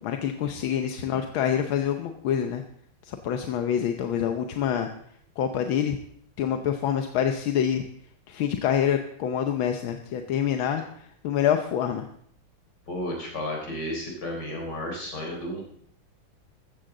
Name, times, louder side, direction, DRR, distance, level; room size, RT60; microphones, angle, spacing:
voice 1, 0.0-2.6 3.1-4.9 5.4-6.0 6.4-7.8 8.3-10.8 11.2-12.0, left 9 dB, 85° left, 6 dB, 1.7 m, -26 dB
voice 2, 12.9-15.6, left 1 dB, 55° left, 0 dB, 4.4 m, -33 dB
14.5 x 14.5 x 3.8 m, 0.64 s
omnidirectional pair, 2.2 m